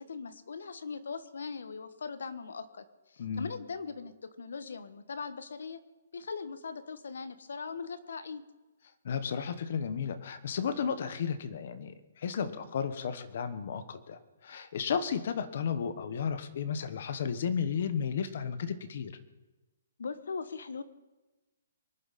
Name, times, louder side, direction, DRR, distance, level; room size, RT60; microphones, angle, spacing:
voice 1, 0.0-5.8 6.1-8.4 20.0-20.8, left 5 dB, 70° left, 12 dB, 1.4 m, -40 dB
voice 2, 3.2-3.5 9.0-19.2, left 7 dB, 40° left, 11 dB, 1.2 m, -33 dB
25.0 x 11.0 x 4.2 m, 1.1 s
hypercardioid pair, 175°, 0 cm